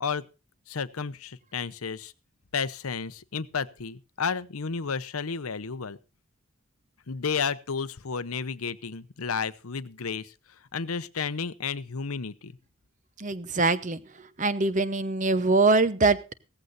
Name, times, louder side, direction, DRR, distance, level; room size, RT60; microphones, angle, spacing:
voice 1, 0.7-2.1 2.5-6.0 7.1-10.3 10.7-12.5, left 5 dB, 90° left, 14 dB, 0.8 m, -32 dB
voice 2, 13.2-14.0 14.4-16.2, right 3 dB, 35° right, 14 dB, 0.8 m, -23 dB
17.5 x 14.5 x 2.6 m, 0.31 s
head